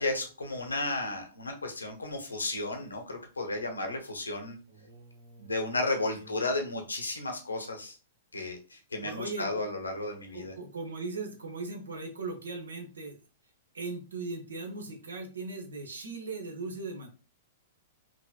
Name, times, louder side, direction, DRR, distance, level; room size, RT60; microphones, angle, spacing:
voice 1, 0.0-4.6 5.4-8.0 8.3-10.5, left 2 dB, 75° left, 4 dB, 1.0 m, -33 dB
voice 2, 4.7-5.8 6.1-6.3 9.0-9.6 10.3-13.2 13.7-17.1, right 3 dB, 70° right, 3 dB, 1.0 m, -39 dB
5.1 x 2.9 x 2.3 m, 0.35 s
figure-of-eight pair, 105°, 0 cm